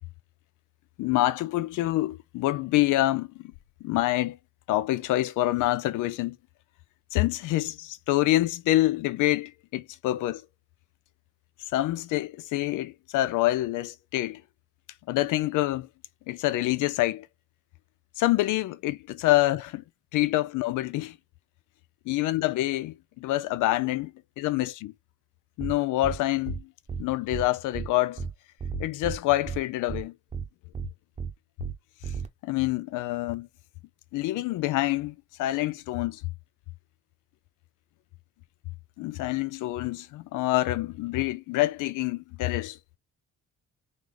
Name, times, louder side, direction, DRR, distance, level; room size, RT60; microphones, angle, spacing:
voice 1, 1.0-3.5 3.8-4.4 4.7-6.4 7.1-10.4 11.7-14.4 15.1-15.9 16.3-17.3 18.2-19.8 20.1-21.2 22.1-24.9 25.6-26.7 27.0-28.2 28.8-30.1 32.4-33.5 34.1-36.2 39.0-42.8, left 16 dB, 85° left, 0.5 m, -26 dB
sound 1, 25.6-25.7 26.0-26.2 26.5-26.6 26.9-27.0 27.3-27.4 27.7-27.9 28.2-28.3 28.6-29.2 29.5-29.6 29.9-30.0 30.3-30.4 30.7-30.9 31.2-31.3 31.6-31.7 32.0-32.3, right 6 dB, 20° right, 0.8 m, -33 dB
3.8 x 3.1 x 3.2 m
cardioid pair, 90°, 30 cm